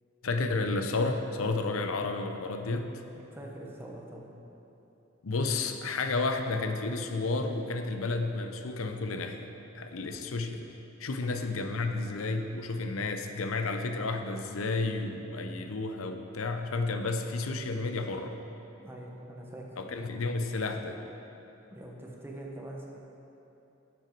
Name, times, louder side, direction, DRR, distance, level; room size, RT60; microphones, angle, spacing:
voice 1, 0.2-3.0 5.2-9.5 9.7-10.7 11.0-18.4 19.8-21.0, left 3 dB, 90° left, 6 dB, 0.6 m, -31 dB
voice 2, 3.1-4.3 11.3-11.4 18.8-19.8 21.7-22.9, right 1 dB, 10° right, -1 dB, 1.1 m, -44 dB
10.0 x 7.9 x 4.6 m, 2.9 s
head